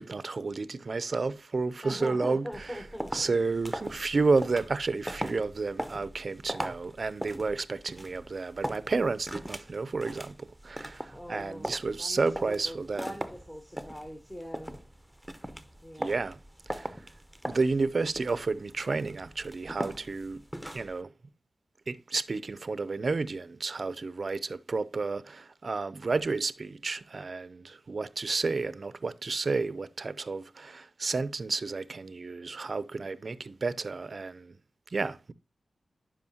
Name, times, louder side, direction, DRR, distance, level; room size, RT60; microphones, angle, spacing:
voice 1, 0.0-2.8 3.1-13.1 16.0-16.4 16.7-16.9 17.5-20.4 20.7-21.1 21.9-34.5 34.9-35.3, right 4 dB, 55° right, 0.4 m, -31 dB
voice 2, 1.8-3.3 11.1-11.7 12.0-14.7 15.8-16.2, equal, 15° left, 1.0 m, -41 dB
sound 1, 2.5-21.0, equal, ahead, 0.7 m, -40 dB
11.0 x 5.0 x 2.7 m
cardioid pair, 65°, 0 cm